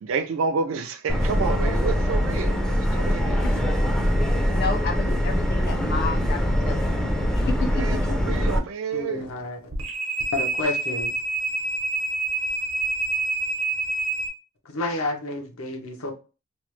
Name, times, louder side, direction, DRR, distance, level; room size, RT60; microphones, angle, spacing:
voice 1, 0.0-3.4 7.7-9.3, right 5 dB, 65° right, 0.3 m, -29 dB
Subway metro underground, 1.1-8.6, equal, 5° left, 0.4 m, -23 dB
voice 2, 4.5-7.0 7.3-7.7 8.1-8.3, left 4 dB, 50° left, 0.6 m, -31 dB
voice 3, 8.9-9.6 10.3-11.1 14.7-16.1, left 2 dB, 85° left, 0.8 m, -29 dB
sound 1, 9.7-14.3, right 3 dB, 85° right, 0.9 m, -27 dB
3.0 x 2.0 x 3.0 m
head